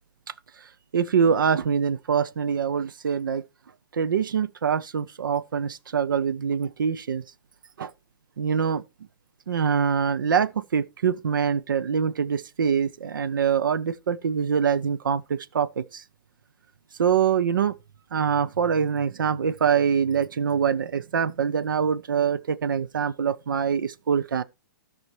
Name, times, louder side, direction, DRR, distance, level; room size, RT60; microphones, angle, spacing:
voice 1, 0.9-3.4 3.9-7.2 7.8-7.9 8.4-8.8 9.5-16.0 17.0-17.7 18.1-24.4, right 7 dB, 75° right, 0.8 m, -24 dB
16.0 x 5.9 x 3.2 m
hypercardioid pair, 175°, 11 cm